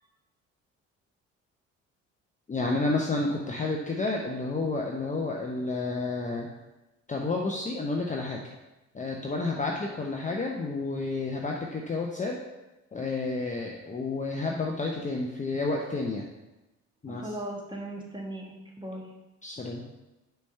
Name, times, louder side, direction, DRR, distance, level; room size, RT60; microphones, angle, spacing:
voice 1, 2.5-6.5 7.1-8.4 8.9-12.4 12.9-16.3 17.0-17.2 19.4-19.8, left 3 dB, 20° left, 0 dB, 0.7 m, -30 dB
voice 2, 17.1-19.1, right 1 dB, 10° right, -2 dB, 1.6 m, -38 dB
5.1 x 3.3 x 5.5 m, 1.0 s
hypercardioid pair, 55°, 38 cm